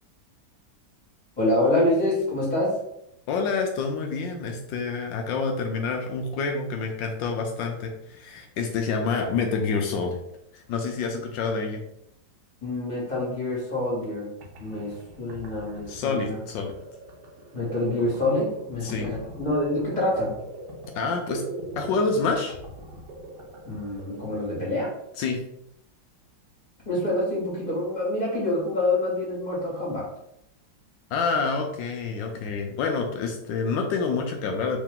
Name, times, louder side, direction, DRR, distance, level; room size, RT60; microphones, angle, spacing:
voice 1, 1.4-2.7 12.6-14.3 14.6-16.4 17.5-20.3 23.6-24.9 26.8-30.1, left 1 dB, 25° left, -6 dB, 1.7 m, -26 dB
voice 2, 3.3-10.2 10.5-11.8 15.9-16.8 18.8-19.2 20.9-21.4 21.8-22.6 25.2-25.4 31.1-34.8, left 4 dB, 75° left, 3 dB, 1.2 m, -27 dB
sound 1, 14.1-14.2 14.4-25.0, right 1 dB, 65° right, 1.3 m, -41 dB
3.7 x 3.0 x 3.7 m, 0.78 s
omnidirectional pair, 2.1 m